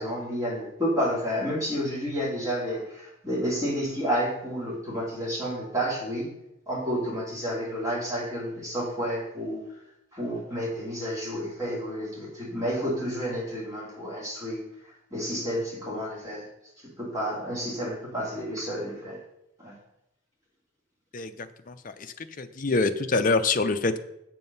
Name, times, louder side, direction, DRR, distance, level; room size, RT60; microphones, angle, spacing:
voice 1, 0.0-6.3 6.7-9.6 10.1-14.6 15.1-16.5 17.0-19.2 19.6-19.7, equal, 15° right, -5 dB, 3.0 m, -30 dB
voice 2, 21.1-24.0, left 3 dB, 40° left, 9 dB, 0.6 m, -26 dB
7.7 x 7.5 x 5.4 m, 0.85 s
head